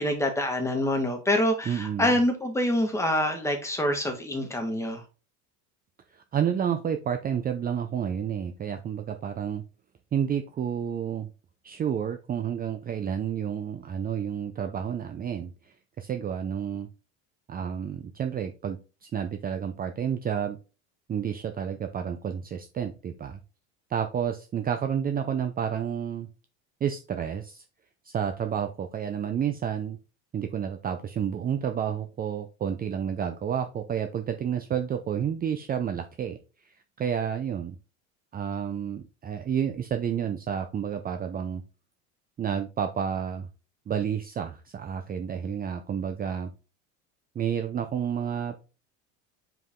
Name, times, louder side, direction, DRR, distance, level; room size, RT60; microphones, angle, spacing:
voice 1, 0.0-5.0, left 1 dB, 10° left, 3 dB, 1.7 m, -26 dB
voice 2, 1.7-2.1 6.1-9.6 10.1-11.3 11.6-16.9 17.5-20.6 21.1-23.4 23.9-26.3 26.8-27.6 28.0-30.0 30.3-37.7 38.3-41.6 42.4-43.5 43.9-46.5 47.3-48.6, right 8 dB, 25° right, 7 dB, 0.6 m, -30 dB
5.4 x 4.9 x 3.7 m, 0.33 s
supercardioid pair, 115°, 34 cm